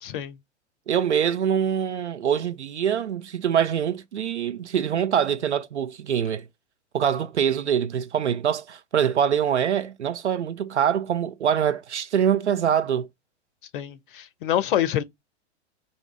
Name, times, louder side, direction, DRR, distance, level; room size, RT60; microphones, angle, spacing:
voice 1, 0.0-0.4 13.7-15.0, left 11 dB, 50° left, 0.5 m, -26 dB
voice 2, 0.9-6.5 6.9-13.1, right 8 dB, 75° right, 0.5 m, -24 dB
2.7 x 2.4 x 3.1 m
figure-of-eight pair, 100°, 35 cm